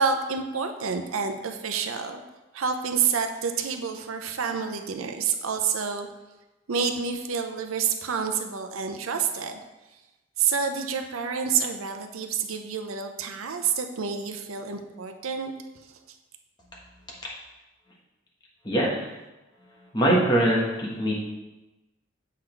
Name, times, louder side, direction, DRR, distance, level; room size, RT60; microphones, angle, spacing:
voice 1, 0.0-2.2 2.5-6.1 6.7-9.6 10.4-15.5, right 6 dB, 90° right, 5 dB, 0.6 m, -28 dB
voice 2, 18.6-19.1 19.9-21.1, right 1 dB, 20° left, -4 dB, 1.2 m, -22 dB
7.4 x 3.9 x 4.5 m, 1.1 s
head